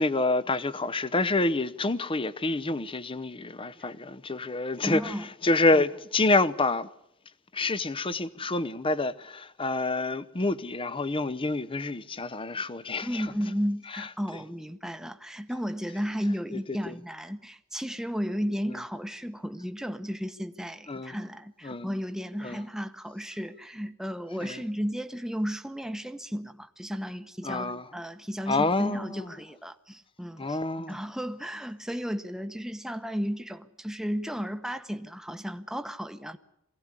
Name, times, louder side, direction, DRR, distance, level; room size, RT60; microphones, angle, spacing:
voice 1, 0.0-6.9 7.5-13.3 13.9-14.1 16.5-17.0 18.7-18.8 20.9-21.2 21.6-21.9 22.4-22.6 24.4-24.6 27.4-27.9 28.5-29.3 30.4-31.0, left 2 dB, 25° left, 0.8 m, -28 dB
voice 2, 4.8-5.3 13.0-30.6 30.9-36.4, equal, ahead, 1.1 m, -34 dB
23.5 x 17.0 x 9.8 m
head